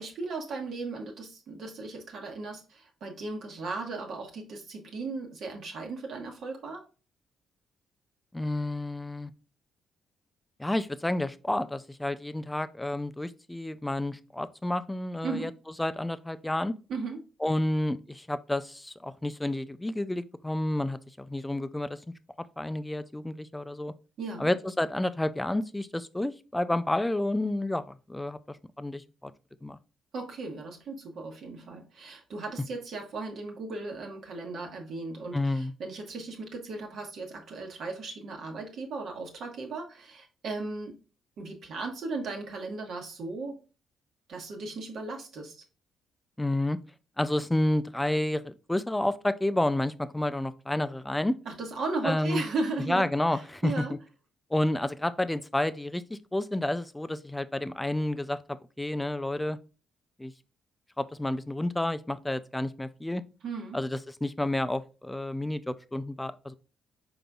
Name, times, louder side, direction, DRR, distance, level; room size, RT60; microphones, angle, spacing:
voice 1, 0.0-6.8 15.2-15.5 16.9-17.2 24.2-24.5 30.1-41.0 41.4-43.6 44.3-45.6 51.4-53.9 63.4-63.8, right 3 dB, 65° right, 1.2 m, -36 dB
voice 2, 8.3-9.3 10.6-15.5 15.8-16.7 17.4-22.0 22.4-23.9 24.4-29.3 29.6-29.8 35.3-35.7 46.4-46.8 47.2-51.4 52.0-52.4 52.9-54.0 54.5-59.6 60.2-60.3 61.0-63.2 63.7-66.5, left 1 dB, 10° left, 0.4 m, -30 dB
5.2 x 3.9 x 2.3 m
cardioid pair, 90°, 0 cm